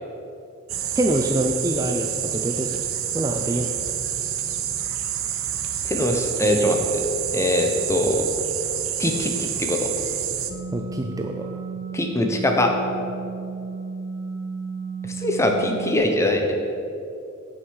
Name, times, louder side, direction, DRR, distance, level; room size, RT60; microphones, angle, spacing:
sound 1, 0.7-10.5, right 9 dB, 70° right, 0.8 m, -28 dB
voice 1, 0.9-2.8 3.1-3.8 10.7-11.5, right 1 dB, 15° right, 4 dB, 0.4 m, -25 dB
voice 2, 5.8-7.0 7.3-8.2 9.0-9.9 11.9-12.7 15.2-16.4, left 1 dB, 15° left, 3 dB, 0.9 m, -22 dB
sound 2, 10.5-16.0, right 5 dB, 50° right, 1.1 m, -33 dB
9.2 x 6.3 x 6.4 m, 2.7 s
head